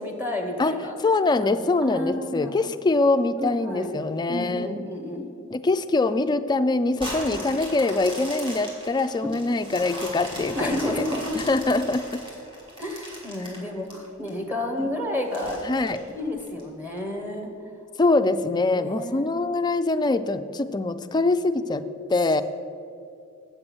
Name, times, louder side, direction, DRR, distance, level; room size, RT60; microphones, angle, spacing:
voice 1, 0.0-1.0 1.4-2.5 3.4-3.9 4.3-5.3 7.3-7.4 10.5-11.3 12.8-15.6 16.1-17.5 18.7-19.3, left 1 dB, 10° right, 1 dB, 1.1 m, -31 dB
voice 2, 0.6-4.8 5.5-11.1 11.4-12.2 14.8-14.9 15.6-16.0 18.0-22.4, left 3 dB, 20° left, 10 dB, 0.3 m, -24 dB
sound 1, 7.0-14.3 14.8-14.9 15.3-16.6 17.2-17.3, equal, 25° right, 2.4 m, -38 dB
8.0 x 7.7 x 6.1 m, 2.5 s
head